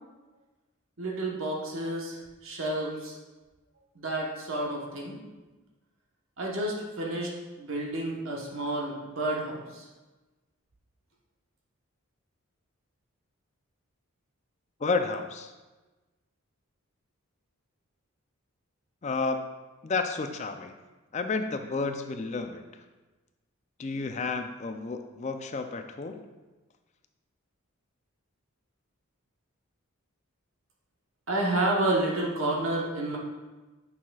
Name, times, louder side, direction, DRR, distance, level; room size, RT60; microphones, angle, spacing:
voice 1, 1.0-3.2 3.9-5.2 6.4-7.3 7.6-9.9 31.3-33.2, right 1 dB, 65° right, -2 dB, 1.1 m, -30 dB
voice 2, 14.8-15.5 19.0-19.4 19.8-20.7 21.1-22.6 23.8-26.3, left 4 dB, 30° left, 7 dB, 0.4 m, -31 dB
8.8 x 5.6 x 2.4 m, 1.2 s
head